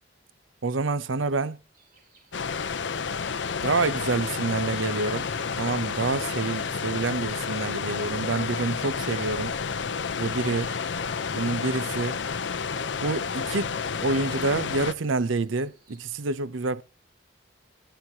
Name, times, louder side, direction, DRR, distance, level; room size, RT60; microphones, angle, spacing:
voice 1, 0.6-1.6 3.6-5.3 5.6-9.6 10.2-10.7 11.3-12.2 13.0-13.7 14.0-16.8, right 3 dB, 80° right, 0.7 m, -27 dB
sound 1, 1.7-16.0, right 3 dB, 45° right, 3.5 m, -59 dB
sound 2, 2.3-14.9, left 5 dB, 65° left, 0.7 m, -30 dB
22.0 x 7.9 x 2.8 m
head